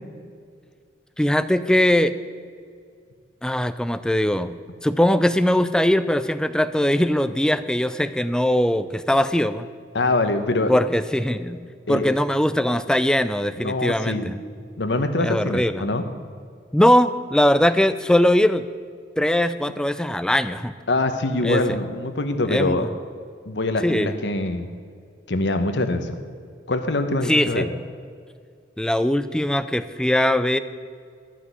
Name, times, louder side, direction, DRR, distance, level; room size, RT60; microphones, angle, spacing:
voice 1, 1.2-2.1 3.4-4.5 4.8-9.7 10.7-11.6 11.9-14.4 15.2-15.9 16.7-18.7 19.2-20.7 21.4-21.6 22.5-22.9 23.8-24.1 27.3-27.7 28.8-30.6, left 1 dB, 5° left, 13 dB, 0.4 m, -20 dB
voice 2, 9.9-10.7 11.9-12.1 13.6-14.2 14.8-16.0 20.9-22.9 23.5-24.7 25.3-26.2 26.7-27.7, left 2 dB, 75° left, 7 dB, 1.0 m, -24 dB
12.0 x 6.0 x 9.4 m, 2.1 s
head